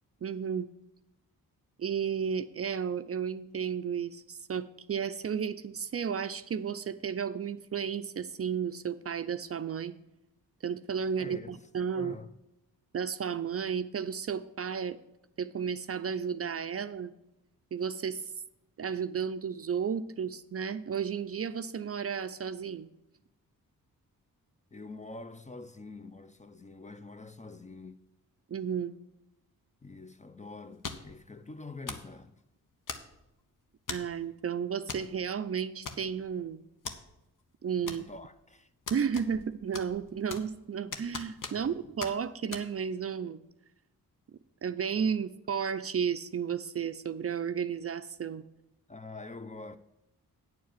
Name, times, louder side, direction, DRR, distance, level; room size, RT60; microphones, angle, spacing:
voice 1, 0.2-0.7 1.8-9.9 10.6-12.2 12.9-15.0 15.4-17.1 17.7-18.2 18.8-22.9 28.5-28.9 33.9-36.6 37.6-38.0 38.9-43.4 44.6-48.4, right 7 dB, 40° right, 0.5 m, -33 dB
voice 2, 11.2-11.6 11.9-12.3 24.7-28.0 29.8-32.4 37.8-38.7 41.5-41.9 48.9-49.8, left 3 dB, 20° left, 0.6 m, -46 dB
sound 1, 30.8-31.2 31.9-32.1 32.9-33.3 33.9-34.2 34.9-35.1 35.4-35.5 35.9-36.3 36.9-37.0 37.9-38.3 38.9-39.5 39.7-40.6 40.9-41.7 42.0-42.1 42.5-42.7, left 5 dB, 60° left, 1.0 m, -40 dB
9.3 x 4.6 x 7.6 m
cardioid pair, 60°, 36 cm